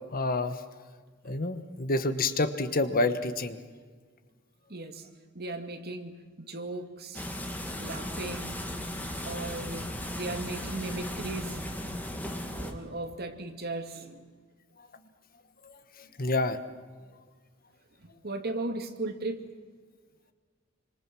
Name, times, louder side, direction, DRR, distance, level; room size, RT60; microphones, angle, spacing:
voice 1, 0.1-0.6 1.2-3.6 15.6-15.8 16.2-16.6, left 2 dB, 45° left, 10 dB, 1.4 m, -28 dB
voice 2, 4.7-5.1 5.3-7.3 7.8-8.6 9.2-9.9 10.1-11.6 12.6-14.2 18.0-19.5, right 2 dB, 50° right, 5 dB, 2.4 m, -37 dB
sound 1, 7.1-12.7, left 1 dB, 10° left, 2.4 m, -36 dB
26.5 x 26.0 x 6.3 m, 1.5 s
head